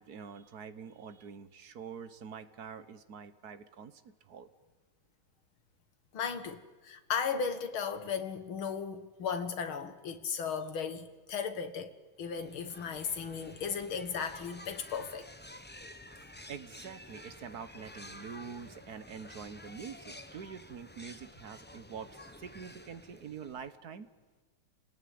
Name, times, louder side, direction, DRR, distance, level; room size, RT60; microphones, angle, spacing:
voice 1, 0.0-4.5 16.5-22.1 22.4-24.1, right 6 dB, 50° right, 1.5 m, -46 dB
voice 2, 6.1-11.9 12.2-15.3, left 6 dB, 70° left, 2.5 m, -36 dB
sound 1, 12.2-23.8, left 1 dB, 10° left, 0.5 m, -51 dB
29.0 x 19.5 x 9.5 m
omnidirectional pair, 2.3 m